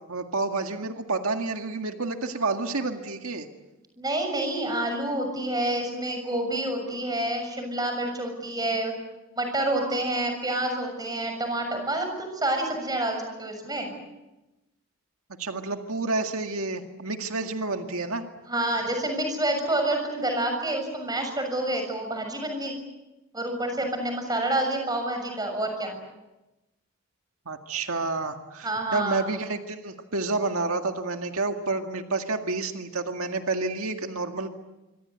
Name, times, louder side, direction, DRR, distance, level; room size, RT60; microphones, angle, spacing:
voice 1, 0.1-3.5 15.4-18.2 27.5-34.5, right 3 dB, 90° right, 5 dB, 2.0 m, -29 dB
voice 2, 4.0-8.9 9.4-13.9 18.5-22.7 23.3-25.9 28.6-29.3, right 1 dB, 20° right, 5 dB, 6.7 m, -28 dB
25.5 x 25.5 x 8.2 m, 1.0 s
head